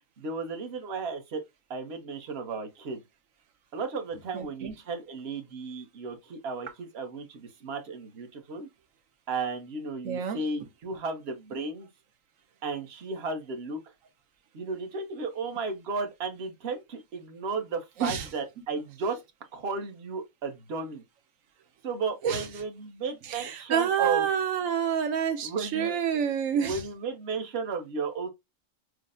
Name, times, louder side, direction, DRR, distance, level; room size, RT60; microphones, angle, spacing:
voice 1, 0.2-1.4 1.7-3.0 3.7-8.7 9.3-11.9 12.6-13.8 14.5-19.2 19.5-21.0 21.8-24.3 25.4-26.0 26.5-28.3, right 4 dB, 50° right, 1.2 m, -34 dB
voice 2, 4.3-4.7 10.0-10.5 18.0-18.3 22.2-22.5 23.2-26.8, right 8 dB, 75° right, 1.2 m, -28 dB
6.3 x 2.1 x 2.5 m
omnidirectional pair, 1.4 m